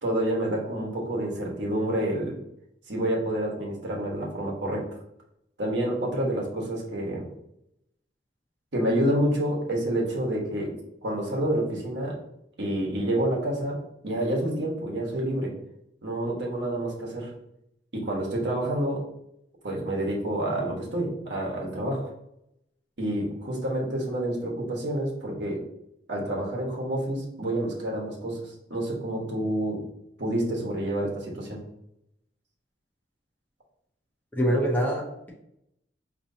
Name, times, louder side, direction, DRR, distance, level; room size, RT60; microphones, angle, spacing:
voice 1, 0.0-2.4 2.9-4.8 5.6-7.3 8.7-10.7 11.0-12.2 12.6-13.8 14.0-15.5 16.0-17.3 17.9-19.0 19.6-22.1 23.0-25.6 26.1-29.8 30.2-31.6, right 1 dB, 65° right, -2 dB, 1.2 m, -28 dB
voice 2, 34.4-35.3, equal, 10° left, -2 dB, 0.8 m, -25 dB
5.1 x 3.0 x 2.7 m, 0.79 s
head